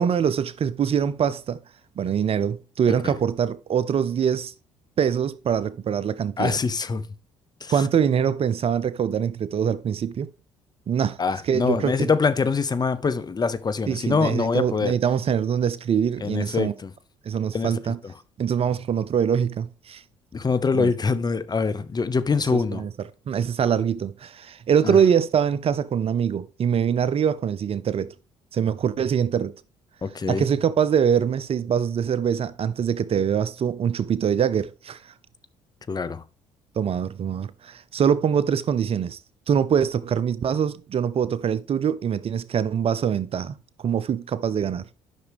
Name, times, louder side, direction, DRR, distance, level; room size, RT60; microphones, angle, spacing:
voice 1, 0.0-1.6 2.0-4.5 5.0-6.6 7.7-10.3 10.9-11.2 11.4-12.1 13.9-16.7 17.2-18.0 18.4-20.0 20.8-20.9 22.5-28.1 28.5-29.5 30.3-35.1 36.8-39.2 39.5-43.6 43.8-44.9, right 8 dB, 45° right, 0.5 m, -24 dB
voice 2, 6.4-7.0 7.6-7.7 11.2-14.9 16.2-16.9 17.5-17.7 20.3-22.8 24.8-25.0 30.0-30.4 35.9-36.2, left 4 dB, 30° left, 0.8 m, -24 dB
10.0 x 6.0 x 3.5 m
hypercardioid pair, 55°, 14 cm